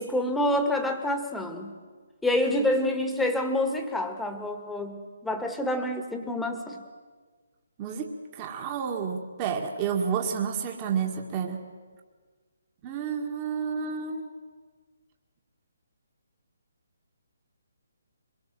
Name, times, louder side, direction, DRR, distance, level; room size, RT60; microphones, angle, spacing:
voice 1, 0.0-1.8 2.2-6.8, left 1 dB, 5° left, 6 dB, 1.9 m, -27 dB
voice 2, 7.8-11.6 12.8-14.3, right 6 dB, 25° right, 2 dB, 2.0 m, -30 dB
23.5 x 22.5 x 7.7 m, 1.5 s
figure-of-eight pair, 140°, 0 cm